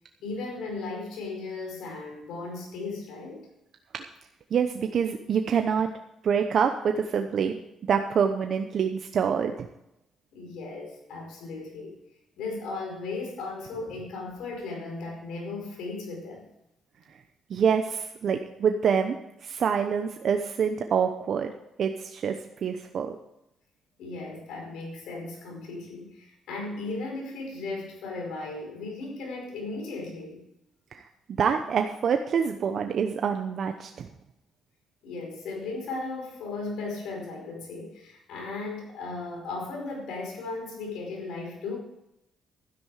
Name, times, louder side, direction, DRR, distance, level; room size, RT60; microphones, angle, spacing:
voice 1, 0.2-3.5 10.3-12.0 12.4-16.5 24.0-30.4 35.0-41.8, left 3 dB, 85° left, 0 dB, 5.0 m, -36 dB
voice 2, 4.5-5.9 6.2-7.5 7.9-9.7 17.5-19.2 19.4-21.5 21.8-23.2 30.9-34.1, right 7 dB, 60° right, 6 dB, 0.8 m, -26 dB
12.5 x 10.0 x 4.9 m, 0.84 s
cardioid pair, 90°, 0 cm